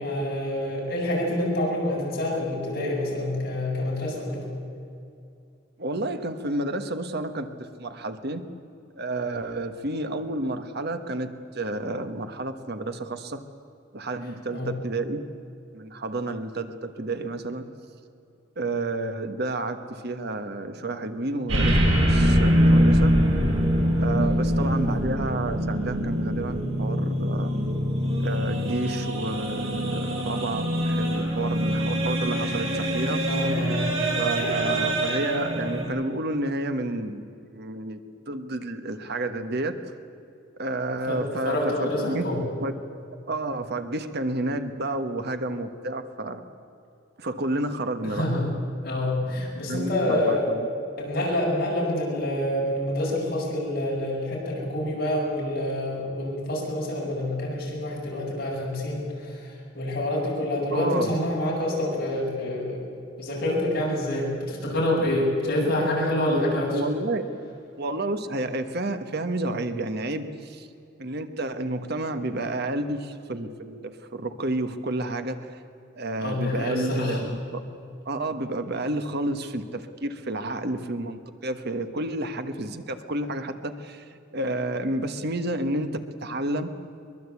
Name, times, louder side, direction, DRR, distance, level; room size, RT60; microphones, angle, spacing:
voice 1, 0.0-4.4 14.5-14.7 24.6-24.8 33.3-33.8 41.1-41.2 41.4-42.4 48.0-48.5 48.8-50.4 51.0-59.1 59.7-62.8 63.2-66.7 76.2-77.2, left 1 dB, 50° left, -3 dB, 7.9 m, -27 dB
voice 2, 5.8-8.4 9.0-13.4 13.9-15.2 15.7-17.7 18.6-23.1 24.0-27.5 28.2-33.2 34.1-38.0 38.3-39.9 40.6-42.2 42.6-42.7 43.3-46.4 47.2-48.3 49.7-50.7 60.7-61.1 66.3-66.4 66.7-67.2 67.8-70.7 71.0-75.5 75.9-77.6 78.0-84.0 84.3-86.7, right 2 dB, 55° right, 8 dB, 1.4 m, -30 dB
sound 1, 21.5-35.8, equal, 85° right, 6.8 m, -24 dB
23.0 x 22.0 x 8.4 m, 2.6 s
head